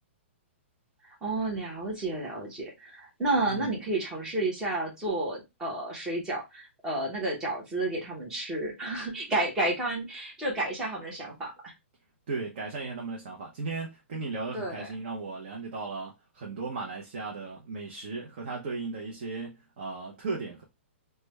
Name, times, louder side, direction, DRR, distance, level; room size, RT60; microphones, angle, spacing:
voice 1, 1.0-11.7 14.5-14.9, right 2 dB, 10° right, 0.9 m, -31 dB
voice 2, 3.4-3.7 12.3-20.6, right 3 dB, 40° right, 0.7 m, -36 dB
3.2 x 2.2 x 3.2 m
hypercardioid pair, 170°, 7 cm